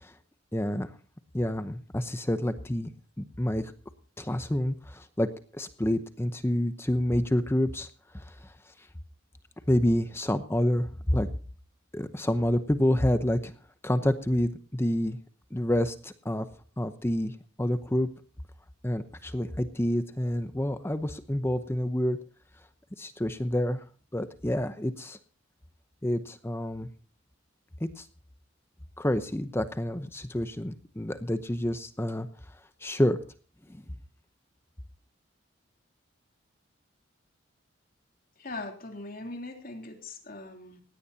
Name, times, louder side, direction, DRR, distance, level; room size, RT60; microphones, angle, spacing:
voice 1, 0.5-0.9 1.3-2.9 3.2-3.7 4.2-7.9 8.1-8.5 9.7-11.3 11.9-13.5 13.8-15.2 15.5-16.5 16.8-18.1 18.8-22.2 23.0-23.8 24.1-25.2 26.0-26.9 27.8-28.1 29.0-32.3 32.8-33.2 33.7-33.8, left 1 dB, 10° left, 10 dB, 0.8 m, -28 dB
voice 2, 38.4-40.8, left 2 dB, 50° left, 4 dB, 3.3 m, -40 dB
19.5 x 17.0 x 2.8 m, 0.41 s
head